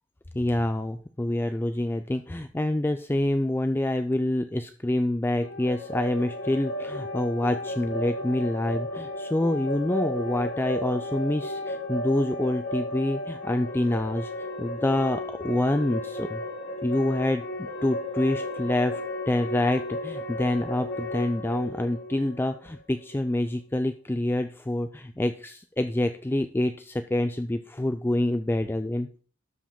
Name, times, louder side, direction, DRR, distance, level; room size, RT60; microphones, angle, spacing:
voice 1, 0.3-14.3 14.6-16.4 16.8-29.1, left 1 dB, 10° left, 8 dB, 0.4 m, -27 dB
sound 1, 5.4-23.2, left 1 dB, 90° left, 3.3 m, -34 dB
12.5 x 5.0 x 3.6 m, 0.43 s
head